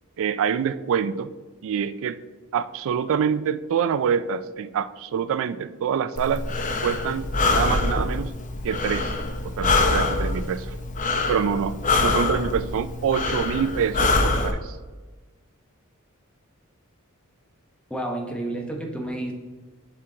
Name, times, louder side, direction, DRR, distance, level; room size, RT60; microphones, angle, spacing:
voice 1, 0.2-1.3 1.6-2.2 2.5-6.4 6.8-8.3 8.6-9.1 9.4-10.7 11.3-14.8, right 7 dB, 65° right, 13 dB, 0.3 m, -26 dB
Breathing, 6.2-14.5, left 3 dB, 35° left, 0.7 m, -25 dB
voice 2, 17.9-19.3, right 1 dB, 5° left, 1 dB, 0.9 m, -30 dB
7.5 x 4.5 x 3.8 m, 1.3 s
head